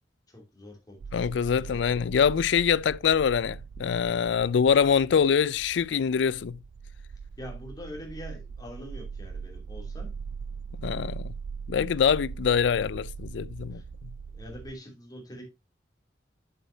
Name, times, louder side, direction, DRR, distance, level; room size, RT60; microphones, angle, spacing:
voice 1, 0.3-1.0 1.5-2.0 7.4-10.1 13.7-13.8 14.3-15.4, equal, 20° left, 2.8 m, -44 dB
sound 1, 1.0-14.7, right 5 dB, 65° right, 0.3 m, -40 dB
voice 2, 1.1-6.6 10.8-11.3 11.7-13.8, left 7 dB, 70° left, 0.4 m, -24 dB
8.3 x 7.1 x 2.7 m
head